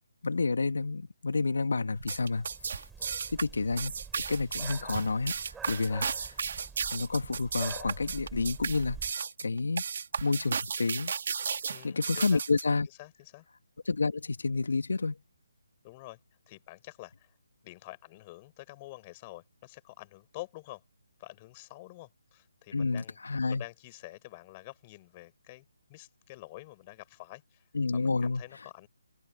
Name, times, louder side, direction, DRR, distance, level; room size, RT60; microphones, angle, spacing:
voice 1, 0.2-2.5 3.3-6.3 6.9-9.8 10.2-11.1 11.8-12.9 13.8-15.2 22.7-23.6 27.7-28.4, left 4 dB, 75° left, 1.5 m, -30 dB
sound 1, 1.9-9.1, right 6 dB, 5° right, 2.9 m, -48 dB
sound 2, 2.0-12.6, right 6 dB, 55° right, 1.7 m, -34 dB
voice 2, 11.7-12.4 13.0-13.5 15.8-16.2 16.5-17.3 17.6-20.8 21.2-23.2 23.4-25.6 25.9-27.7 27.9-28.9, left 20 dB, 25° left, 6.2 m, -48 dB
figure-of-eight pair, 155°, 0 cm